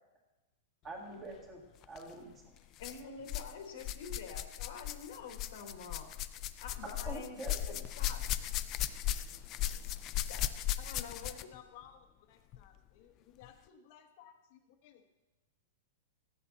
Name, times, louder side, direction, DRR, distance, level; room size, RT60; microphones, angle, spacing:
voice 1, 0.8-2.5 7.0-7.8, right 2 dB, 15° right, 0 dB, 1.9 m, -46 dB
sound 1, 1.8-2.0 2.8-3.5 3.8-11.6 12.5-12.6 13.4-13.5, left 12 dB, 25° left, 0.3 m, -37 dB
voice 2, 2.8-6.1 6.6-7.4 8.0-8.3 9.8-9.9 10.3-10.4 10.8-11.5, left 5 dB, 55° left, 5 dB, 1.4 m, -47 dB
voice 3, 11.3-15.2, left 9 dB, 40° left, 7 dB, 1.1 m, -58 dB
14.0 x 8.3 x 4.0 m, 1.1 s
supercardioid pair, 165°, 0 cm